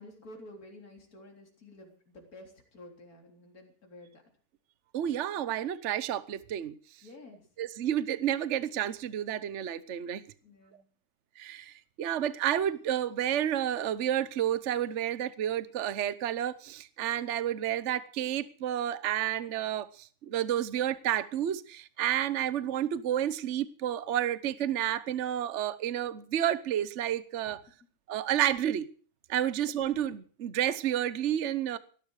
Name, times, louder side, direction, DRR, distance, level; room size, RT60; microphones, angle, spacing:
voice 1, 0.0-4.2 7.0-7.5 10.4-10.9 27.4-27.6, left 1 dB, 65° left, 4.2 m, -51 dB
voice 2, 4.9-6.7 7.6-10.2 11.4-27.6 28.1-28.9 29.3-31.8, right 11 dB, 55° right, 1.1 m, -30 dB
17.5 x 12.5 x 6.4 m
omnidirectional pair, 1.7 m